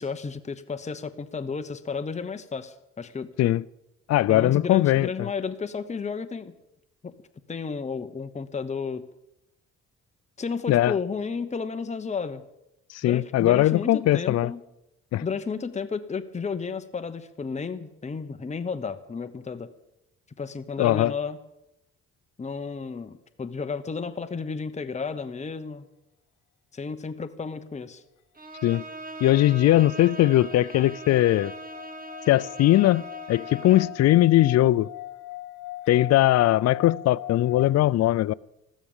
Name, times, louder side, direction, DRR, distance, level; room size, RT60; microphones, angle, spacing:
voice 1, 0.0-3.3 4.3-6.5 7.0-7.1 7.5-9.1 10.4-12.4 13.0-14.6 15.2-19.7 20.4-21.4 22.4-25.9 26.7-28.0, left 5 dB, 25° left, 1.0 m, -32 dB
voice 2, 4.1-5.3 10.7-10.9 12.9-14.5 15.1-15.2 20.8-21.1 28.6-28.8 29.2-31.5 32.3-34.9 35.9-38.3, left 14 dB, 60° left, 0.5 m, -20 dB
Bowed string instrument, 28.4-34.0, right 2 dB, 30° right, 2.3 m, -40 dB
sound 1, 29.3-37.7, left 16 dB, 85° left, 1.4 m, -41 dB
14.0 x 12.5 x 7.2 m
cardioid pair, 90°, 30 cm